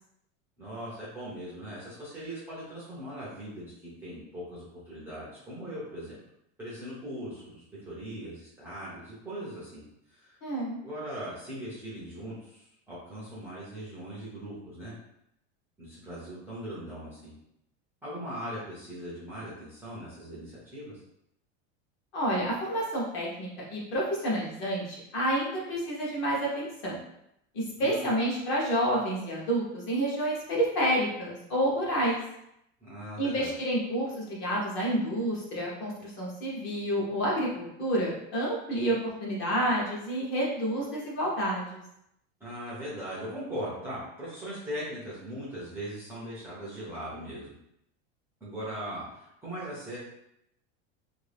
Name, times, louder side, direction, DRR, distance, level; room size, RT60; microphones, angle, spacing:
voice 1, 0.6-6.2 6.6-9.8 10.1-10.4 10.8-14.9 15.8-17.3 18.0-21.0 27.8-28.0 32.8-33.5 42.4-47.5 48.4-50.0, equal, 5° right, -9 dB, 0.6 m, -39 dB
voice 2, 10.4-10.8 22.1-27.0 27.5-32.2 33.2-41.8, right 1 dB, 35° left, -4 dB, 0.9 m, -29 dB
2.8 x 2.7 x 3.3 m, 0.79 s
supercardioid pair, 175°, 32 cm